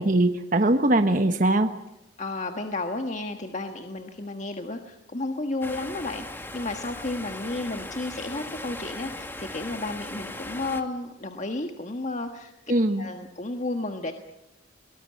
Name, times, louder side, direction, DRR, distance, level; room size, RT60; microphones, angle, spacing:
voice 1, 0.0-1.7 12.7-13.1, right 1 dB, 45° right, 7 dB, 1.2 m, -21 dB
voice 2, 2.2-12.5 13.0-14.1, left 2 dB, 40° left, 5 dB, 1.5 m, -32 dB
sound 1, 5.6-10.8, left 1 dB, 10° left, 1.7 m, -38 dB
23.0 x 19.5 x 8.6 m, 0.91 s
head